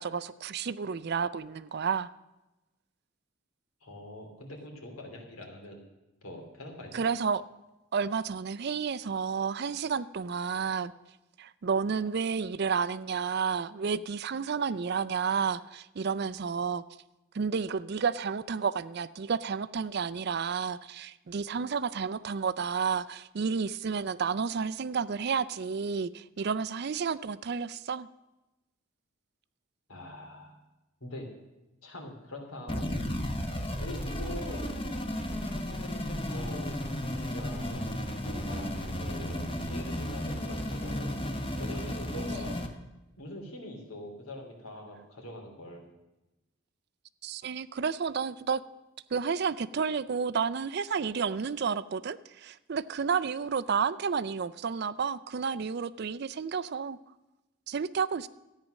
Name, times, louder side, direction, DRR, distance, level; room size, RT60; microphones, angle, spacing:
voice 1, 0.0-2.1 6.9-7.4 7.9-10.9 11.4-16.8 17.3-28.1 47.2-48.6 49.1-57.0 57.7-58.3, right 6 dB, 50° right, 15 dB, 0.4 m, -31 dB
voice 2, 3.8-5.8 6.2-7.0 29.9-30.6 31.0-31.3 31.8-32.9 33.8-34.8 36.3-36.7 37.3-37.9 38.3-41.1 41.6-42.6 43.2-45.8, left 1 dB, 90° left, 2 dB, 3.0 m, -43 dB
sound 1, 32.7-42.7, equal, 25° left, 1.0 m, -34 dB
13.5 x 9.3 x 6.4 m, 1.0 s
head